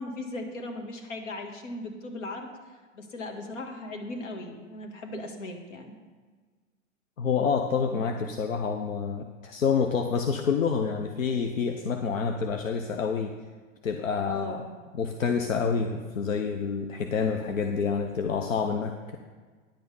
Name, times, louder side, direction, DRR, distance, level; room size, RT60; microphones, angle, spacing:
voice 1, 0.0-2.5 2.9-6.0 7.8-8.1 14.2-14.7, left 2 dB, 70° left, 3 dB, 1.8 m, -37 dB
voice 2, 7.2-13.4 13.8-14.6 14.9-19.2, left 6 dB, 90° left, 5 dB, 0.7 m, -28 dB
10.0 x 6.4 x 5.4 m, 1.5 s
hypercardioid pair, 115°, 38 cm